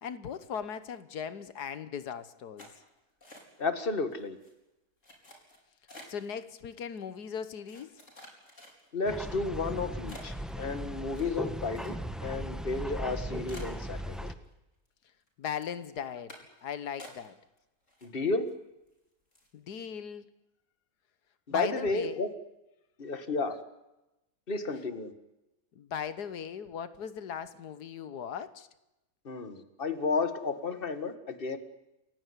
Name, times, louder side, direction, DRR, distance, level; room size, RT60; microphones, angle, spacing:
voice 1, 0.0-2.7 6.1-7.9 15.4-16.3 16.6-17.4 19.5-20.3 21.5-22.3 25.7-28.7, left 7 dB, 90° left, 1.7 m, -38 dB
sound 1, 2.6-3.8 4.1-4.5 5.0-6.3 7.0-7.1 7.7-9.1 9.6-9.7 10.1-12.3 12.6-12.7 13.0-13.1 13.5-14.5 14.9-15.3 15.6-15.8 16.3-16.6 17.0-17.6 17.9-18.5 18.9-19.0 19.3-19.6, left 1 dB, 50° left, 5.4 m, -51 dB
voice 2, 3.6-4.4 8.9-14.3 18.0-18.5 21.5-22.3 23.0-23.6 24.5-25.1 29.3-31.6, left 3 dB, 35° left, 2.0 m, -32 dB
sound 2, 9.0-14.3, equal, ahead, 1.2 m, -38 dB
28.0 x 16.0 x 9.8 m
omnidirectional pair, 1.7 m